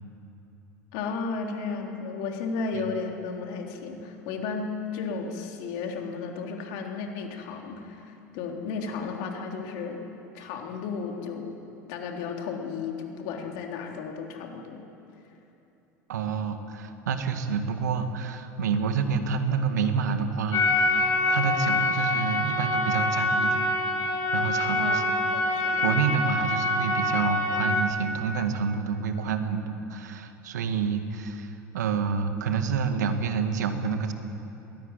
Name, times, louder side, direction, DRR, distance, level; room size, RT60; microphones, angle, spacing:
voice 1, 0.9-10.0 10.3-11.6 11.9-14.8 24.7-25.0 25.3-25.9, left 5 dB, 60° left, 2 dB, 3.5 m, -34 dB
voice 2, 16.1-23.7 24.3-25.0 25.8-34.1, right 6 dB, 75° right, 8 dB, 1.9 m, -28 dB
sound 1, 20.5-27.8, left 2 dB, 40° left, 7.0 m, -25 dB
22.0 x 17.5 x 9.1 m, 3.0 s
hypercardioid pair, 75°, 9 cm